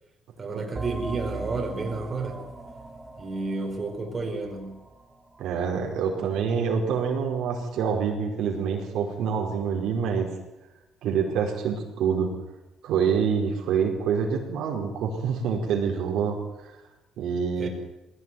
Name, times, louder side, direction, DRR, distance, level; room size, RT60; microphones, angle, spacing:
voice 1, 0.4-2.5 3.2-4.8 17.6-17.7, right 3 dB, 30° right, 2 dB, 4.7 m, -31 dB
sound 1, 0.7-6.0, right 3 dB, 15° right, 3.2 m, -40 dB
voice 2, 5.4-10.3 11.0-12.3 12.8-16.4 17.2-17.7, right 6 dB, 70° right, 0 dB, 5.0 m, -26 dB
20.0 x 17.0 x 9.5 m, 0.97 s
cardioid pair, 110°, 0 cm